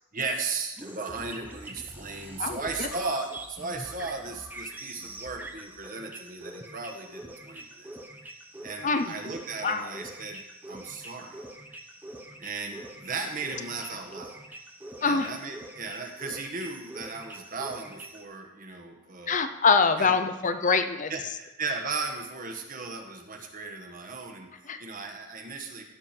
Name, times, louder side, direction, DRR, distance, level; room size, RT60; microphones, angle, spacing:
voice 1, 0.1-7.9 8.6-10.4 10.7-11.4 12.4-14.4 15.0-19.4 20.0-20.2 21.1-24.5 24.8-25.8, right 4 dB, 40° right, 3 dB, 1.4 m, -36 dB
sound 1, 0.8-18.2, right 1 dB, 10° right, 0.8 m, -44 dB
voice 2, 2.4-2.9 8.8-9.1 9.6-9.9 15.0-15.3 19.3-21.1 24.7-24.8, left 4 dB, 35° left, 9 dB, 0.6 m, -24 dB
15.5 x 6.8 x 4.5 m, 0.97 s
head